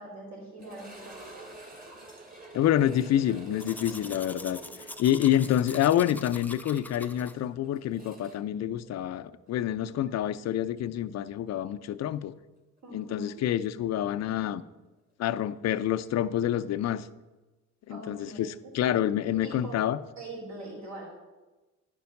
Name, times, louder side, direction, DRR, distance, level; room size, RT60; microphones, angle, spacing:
voice 1, 0.0-1.5 12.8-13.3 17.9-18.7 19.4-19.8 20.2-21.1, right 2 dB, 65° right, -2 dB, 3.5 m, -43 dB
sound 1, 0.6-9.5 9.8-9.9 10.5-10.6 13.2-13.3, right 2 dB, 30° right, 2.0 m, -49 dB
voice 2, 2.5-4.6 5.0-12.3 12.9-14.6 15.2-17.1 17.9-20.0, left 11 dB, 60° left, 13 dB, 0.5 m, -27 dB
Domestic sounds home sounds, 3.6-7.3, left 2 dB, 5° left, 0.5 m, -44 dB
10.0 x 5.3 x 5.8 m, 1.1 s
cardioid pair, 90°, 30 cm